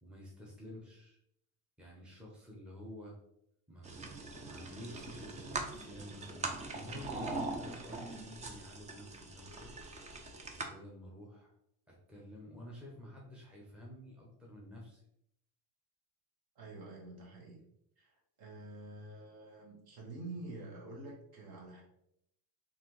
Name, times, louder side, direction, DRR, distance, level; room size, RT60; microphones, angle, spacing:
voice 1, 0.0-1.2 1.8-3.2 3.7-9.7 10.7-11.6 11.9-15.0, left 1 dB, ahead, -3 dB, 0.7 m, -51 dB
sound 1, 3.8-10.7, right 3 dB, 15° right, 0.3 m, -42 dB
voice 2, 16.5-17.6 18.0-21.8, right 2 dB, 50° right, -2 dB, 1.3 m, -48 dB
3.3 x 2.6 x 2.9 m, 0.76 s
supercardioid pair, 100°, 46 cm